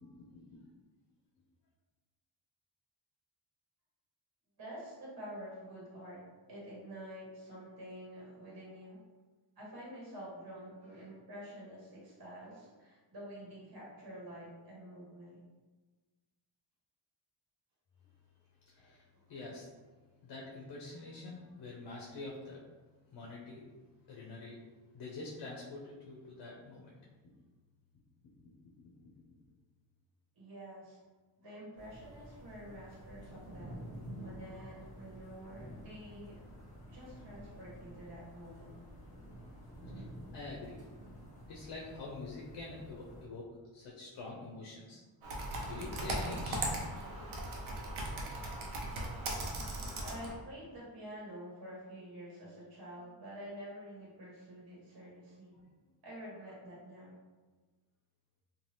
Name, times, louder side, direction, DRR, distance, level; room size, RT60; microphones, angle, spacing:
voice 1, 0.0-0.6 18.7-19.7 20.2-22.7 23.1-23.7 24.1-24.6 24.9-26.9 39.9-40.0 40.3-40.8 41.5-45.0 45.6-46.8, left 3 dB, 60° left, -3 dB, 0.6 m, -46 dB
voice 2, 4.6-6.2 6.5-9.0 9.6-15.4 18.8-18.9 30.4-31.0 31.4-33.8 34.2-36.4 36.9-38.8 50.0-55.6 56.0-57.2, equal, 50° right, -6 dB, 1.1 m, -48 dB
sound 1, 31.8-43.3, equal, 15° left, 1.3 m, -50 dB
Computer keyboard, 45.2-50.3, right 1 dB, 90° right, 0.7 m, -38 dB
2.7 x 2.2 x 3.2 m, 1.3 s
wide cardioid pair, 115°, 47 cm